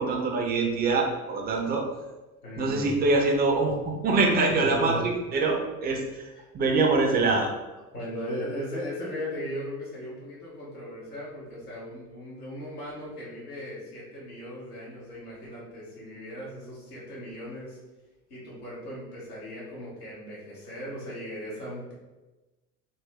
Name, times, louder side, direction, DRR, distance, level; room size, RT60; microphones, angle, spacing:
voice 1, 0.0-1.8 2.6-6.3 6.5-7.5, right 3 dB, 20° right, 1 dB, 0.5 m, -24 dB
voice 2, 2.4-3.0 4.5-5.0 5.4-5.5 6.3-6.5 7.0-7.2 7.9-17.8 18.3-21.9, equal, 80° left, -7 dB, 1.2 m, -37 dB
3.9 x 2.0 x 2.8 m, 1.1 s
figure-of-eight pair, 65°, 45 cm